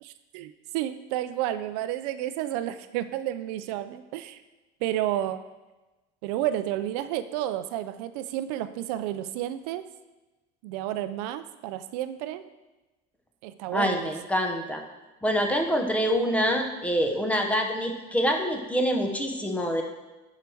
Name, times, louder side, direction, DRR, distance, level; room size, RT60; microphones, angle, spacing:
voice 1, 0.0-4.4 4.8-5.4 6.2-9.8 10.6-12.4 13.4-14.1, right 12 dB, 80° right, 11 dB, 0.6 m, -31 dB
voice 2, 13.7-14.8 15.2-19.8, equal, 5° left, 3 dB, 0.9 m, -26 dB
11.0 x 4.9 x 4.6 m, 1.1 s
cardioid pair, 145°, 20 cm